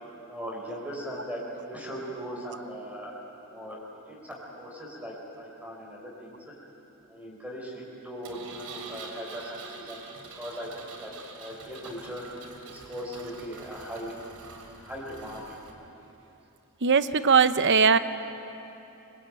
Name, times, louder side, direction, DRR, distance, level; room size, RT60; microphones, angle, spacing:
voice 1, 0.3-3.1 3.5-3.8 4.1-6.4 7.0-10.1 10.4-11.1 11.4-12.2 12.6-14.3 14.7-15.6, equal, 5° right, -3 dB, 4.9 m, -39 dB
Engine, 8.2-15.7, right 4 dB, 85° right, 3.2 m, -46 dB
voice 2, 16.8-18.0, right 5 dB, 55° right, 11 dB, 0.9 m, -20 dB
26.0 x 23.0 x 9.1 m, 3.0 s
head